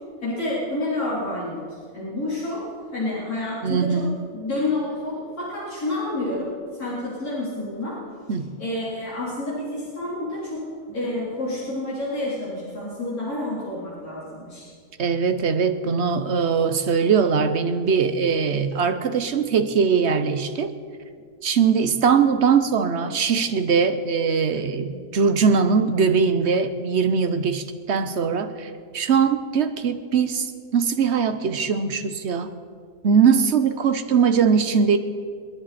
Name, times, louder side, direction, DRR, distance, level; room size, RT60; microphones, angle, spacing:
voice 1, 0.2-1.6 1.9-3.9 4.3-6.5 6.8-8.0 8.6-10.6 10.9-14.7, left 2 dB, 85° left, -9 dB, 4.4 m, -29 dB
voice 2, 3.6-4.2 8.3-8.5 15.0-20.7 21.4-32.5 33.0-35.0, right 6 dB, 55° right, 9 dB, 1.1 m, -21 dB
29.0 x 10.5 x 4.2 m, 2.1 s
omnidirectional pair, 1.5 m